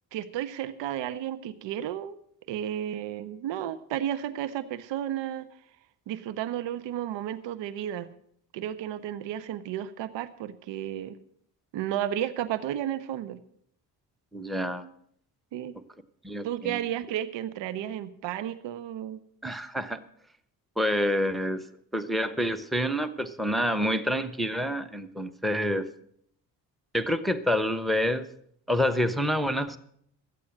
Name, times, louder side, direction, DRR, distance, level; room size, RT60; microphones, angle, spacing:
voice 1, 0.1-2.2 2.5-5.5 6.1-8.1 8.5-11.2 11.7-13.4 15.5-15.7 16.4-19.2, right 11 dB, 60° right, 14 dB, 0.9 m, -33 dB
voice 2, 14.3-14.8 16.2-16.8 19.4-20.0 20.8-21.6 21.9-25.9 26.9-28.3 28.7-29.8, equal, ahead, 9 dB, 1.0 m, -27 dB
13.0 x 8.5 x 7.7 m, 0.69 s
hypercardioid pair, 50°, 48 cm